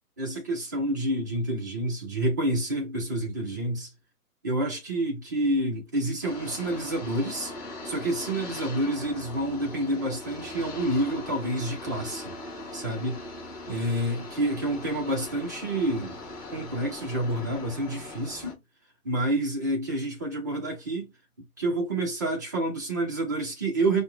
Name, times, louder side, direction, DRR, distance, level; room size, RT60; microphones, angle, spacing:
voice 1, 0.2-3.9 4.4-7.5 7.8-12.3 12.7-13.2 13.7-16.2 16.5-18.6 19.0-21.1 21.6-24.0, right 1 dB, 15° right, 0.4 m, -28 dB
sound 1, 6.2-18.5, left 2 dB, 15° left, 1.7 m, -40 dB
5.2 x 2.1 x 3.3 m
hypercardioid pair, 140°, 47 cm